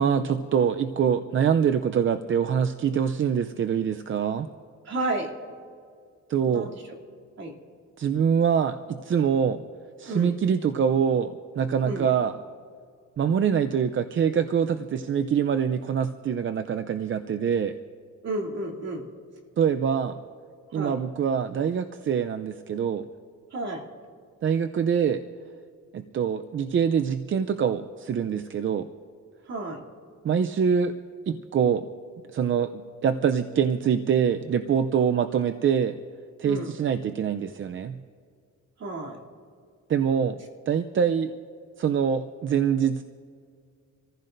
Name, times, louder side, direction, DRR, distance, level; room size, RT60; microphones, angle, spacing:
voice 1, 0.0-4.5 6.3-6.7 8.0-9.6 10.0-12.3 13.2-17.7 19.6-20.2 20.7-23.0 24.4-25.2 25.9-28.9 30.2-30.9 31.3-31.9 32.3-36.0 36.4-38.0 39.9-40.4 40.7-41.3 41.8-43.0, right 7 dB, 40° right, 9 dB, 0.5 m, -24 dB
voice 2, 4.8-5.3 6.4-6.8 7.4-7.5 10.0-10.3 11.8-12.1 18.2-19.0 20.7-21.0 23.5-23.8 29.5-29.8 36.4-36.7 38.8-39.2, right 2 dB, 60° right, -2 dB, 2.9 m, -31 dB
27.0 x 15.0 x 2.6 m, 2.1 s
cardioid pair, 90°, 30 cm